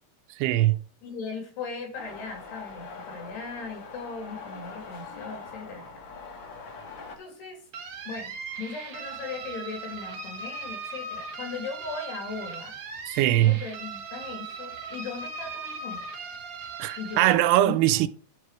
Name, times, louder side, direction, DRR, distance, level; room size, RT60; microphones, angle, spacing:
voice 1, 0.4-0.8 13.1-13.5 16.8-18.1, right 14 dB, 85° right, 2.7 m, -21 dB
voice 2, 1.0-6.1 6.6-6.7 7.2-7.7 8.0-12.8 13.4-16.1 17.0-17.4 17.6-18.1, left 4 dB, 80° left, 5.1 m, -38 dB
sound 1, 1.9-7.2, left 4 dB, 60° left, 1.2 m, -42 dB
sound 2, 7.7-17.3, right 4 dB, 50° right, 1.9 m, -38 dB
10.5 x 4.8 x 4.7 m
omnidirectional pair, 4.7 m